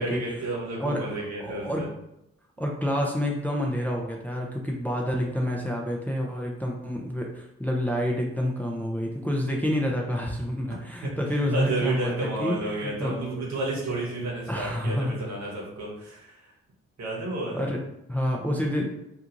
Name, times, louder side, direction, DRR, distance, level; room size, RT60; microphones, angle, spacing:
voice 1, 0.0-1.9 11.0-11.2 11.5-16.4 17.0-17.7, right 2 dB, 60° right, -3 dB, 1.1 m, -31 dB
voice 2, 0.8-1.8 2.6-13.2 14.5-15.2 17.5-17.8 18.1-18.9, equal, 5° left, -1 dB, 0.5 m, -28 dB
2.5 x 2.3 x 2.9 m, 0.84 s
hypercardioid pair, 40°, 31 cm